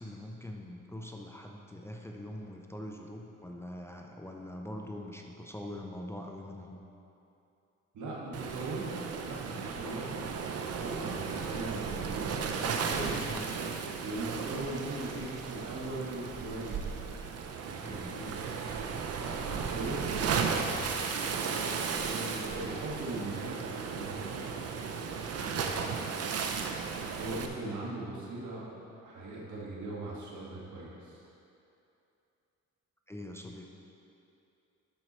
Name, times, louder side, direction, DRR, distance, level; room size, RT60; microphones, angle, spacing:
voice 1, 0.0-6.8 17.8-18.2 33.1-33.7, left 1 dB, 10° left, 1 dB, 0.6 m, -43 dB
voice 2, 7.9-8.9 9.2-10.1 10.6-13.4 14.0-16.8 17.6-18.4 19.2-21.1 22.0-24.7 25.3-26.2 27.2-28.6 29.0-31.2, right 2 dB, 75° right, -4 dB, 1.9 m, -40 dB
Waves surf, 8.3-27.5, right 5 dB, 55° right, 0.7 m, -35 dB
11.0 x 4.5 x 4.4 m, 2.8 s
cardioid pair, 90°, 30 cm